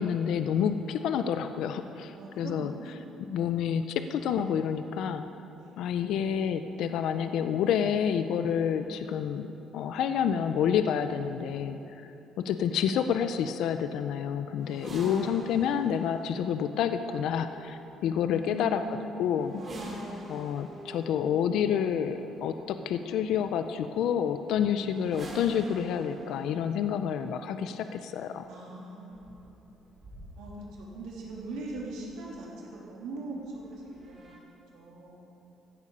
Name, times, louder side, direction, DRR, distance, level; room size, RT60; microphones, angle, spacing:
voice 1, 0.0-2.7 3.3-5.2 5.8-9.4 9.7-12.1 12.4-18.8 19.2-19.6 20.3-28.4, left 8 dB, 75° left, 9 dB, 0.5 m, -29 dB
voice 2, 2.2-3.7 5.6-5.8 18.3-19.1 19.6-20.8 28.5-29.5 30.4-34.5 34.7-35.3, right 2 dB, 85° right, -3 dB, 3.1 m, -42 dB
sound 1, 14.6-32.3 33.4-34.4, right 1 dB, 35° right, 2.9 m, -47 dB
15.0 x 9.9 x 5.5 m, 3.0 s
cardioid pair, 120°, 0 cm